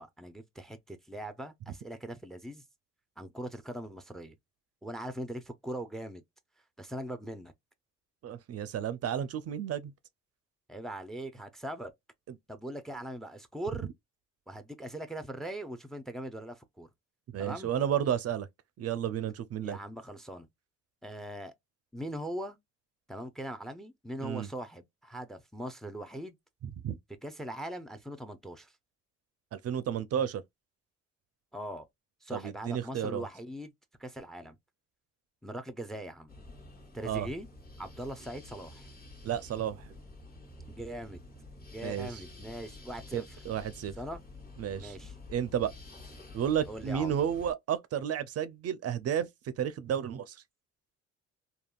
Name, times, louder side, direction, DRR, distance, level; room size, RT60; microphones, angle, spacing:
voice 1, 0.0-2.6 3.2-4.4 4.8-6.2 6.8-7.5 10.7-11.9 12.5-13.9 14.5-16.9 17.4-17.7 19.6-20.5 21.0-21.5 21.9-22.6 23.1-26.4 27.2-28.7 31.5-31.9 32.2-33.7 34.0-34.6 35.4-36.3 36.9-37.5 37.8-38.9 40.7-41.2 41.7-43.4 44.0-44.2 44.8-45.2 46.7-47.2, right 1 dB, ahead, 0.4 m, -41 dB
voice 2, 8.2-9.9 17.3-18.5 18.8-19.8 24.2-24.5 26.6-27.0 29.5-30.4 32.3-33.3 37.0-37.3 39.2-39.9 41.8-42.1 43.1-43.9 44.6-45.0 45.3-45.7 46.3-49.3 49.6-50.4, right 9 dB, 55° right, 0.4 m, -32 dB
sound 1, 36.3-47.5, left 2 dB, 30° left, 1.2 m, -49 dB
3.4 x 2.3 x 2.2 m
cardioid pair, 90°, 30 cm